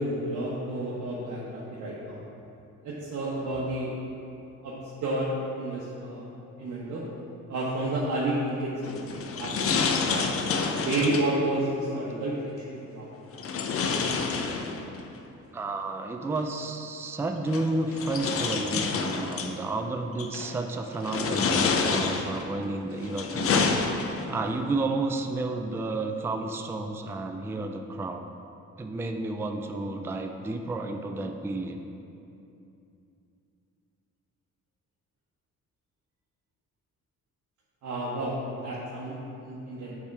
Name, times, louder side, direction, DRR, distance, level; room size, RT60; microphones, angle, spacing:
voice 1, 0.0-2.2 2.8-3.9 4.6-4.7 5.0-5.3 5.6-6.3 6.6-7.0 7.5-10.3 10.8-13.1 37.8-39.9, right 1 dB, 70° right, -7 dB, 1.0 m, -31 dB
sound 1, 8.8-11.4 13.4-15.0 16.4-16.5 17.5-19.6 20.2-20.6 21.0-22.5 23.0-24.4, left 5 dB, 50° left, 0.6 m, -28 dB
voice 2, 15.5-23.7 24.1-28.2 28.8-31.8, right 2 dB, 10° right, 5 dB, 0.3 m, -31 dB
7.1 x 3.5 x 4.7 m, 2.7 s
cardioid pair, 90°, 30 cm